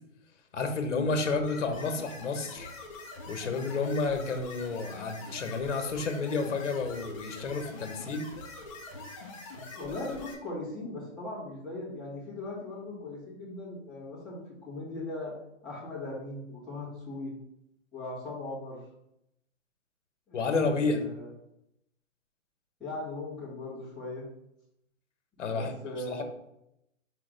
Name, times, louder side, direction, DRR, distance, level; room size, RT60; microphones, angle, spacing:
voice 1, 0.5-2.7 3.3-8.3 20.3-21.1 25.4-26.2, left 4 dB, 65° left, 6 dB, 1.2 m, -31 dB
sound 1, 1.1-10.3, left 2 dB, 25° left, 1.0 m, -44 dB
voice 2, 9.7-15.4 15.6-17.3 17.9-18.8 20.3-21.3 22.8-24.2 25.4-26.2, left 2 dB, ahead, -14 dB, 2.2 m, -39 dB
4.8 x 3.9 x 5.1 m, 0.79 s
hypercardioid pair, 170°, 38 cm